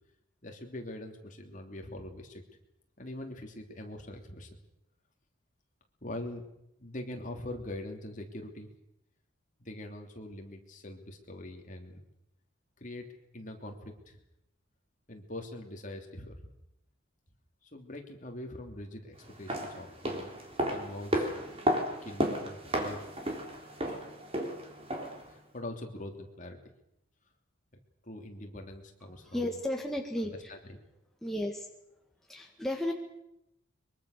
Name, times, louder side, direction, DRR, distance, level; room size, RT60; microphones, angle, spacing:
voice 1, 0.4-2.4 3.0-4.5 6.0-6.5 6.8-8.7 9.6-12.0 12.8-13.1 13.3-14.2 15.1-16.4 17.6-20.3 20.7-21.3 22.0-23.1 23.9-24.1 25.3-26.7 28.0-29.6 30.2-30.8, left 1 dB, 40° left, 3 dB, 3.2 m, -43 dB
sound 1, 19.3-25.3 25.5-25.6, equal, 30° right, 3.6 m, -33 dB
voice 2, 29.1-30.5 31.2-31.7 32.3-32.9, left 1 dB, ahead, 1 dB, 1.9 m, -34 dB
23.5 x 23.5 x 6.7 m, 0.84 s
head